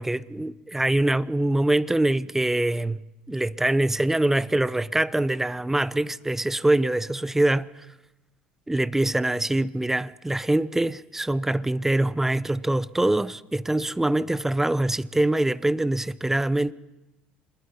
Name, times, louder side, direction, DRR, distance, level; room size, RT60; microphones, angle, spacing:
voice 1, 0.0-3.0 3.3-7.9 8.7-16.7, right 1 dB, 10° right, 0.8 m, -24 dB
26.5 x 21.0 x 5.5 m
hypercardioid pair, 75°, 4 cm